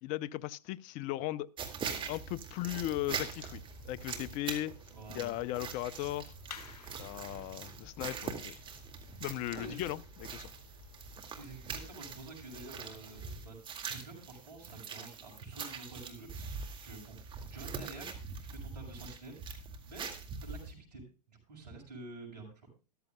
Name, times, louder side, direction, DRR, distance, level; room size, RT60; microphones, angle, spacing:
voice 1, 0.0-1.5 2.1-4.7 5.1-6.3 7.0-8.6 9.2-10.5, left 15 dB, 40° left, 0.5 m, -37 dB
sound 1, 1.6-20.7, right 6 dB, 25° right, 2.0 m, -43 dB
sound 2, 3.1-13.4, left 8 dB, 65° left, 1.7 m, -56 dB
voice 2, 4.9-5.3 7.3-7.5 7.8-7.9 9.5-9.8 11.4-13.6 13.8-16.5 16.8-17.2 17.5-19.4 19.8-20.1 20.4-22.7, right 2 dB, 80° right, 5.7 m, -49 dB
14.0 x 13.5 x 2.2 m
hypercardioid pair, 110°, 21 cm